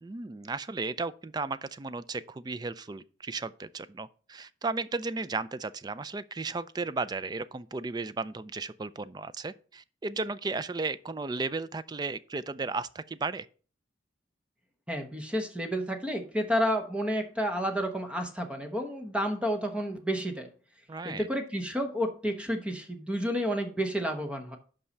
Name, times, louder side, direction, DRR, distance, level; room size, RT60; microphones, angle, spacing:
voice 1, 0.0-13.5 20.9-21.3, right 3 dB, 20° right, 0.3 m, -35 dB
voice 2, 14.9-20.5 21.0-24.6, equal, 5° right, 1.0 m, -30 dB
5.6 x 5.5 x 6.4 m
head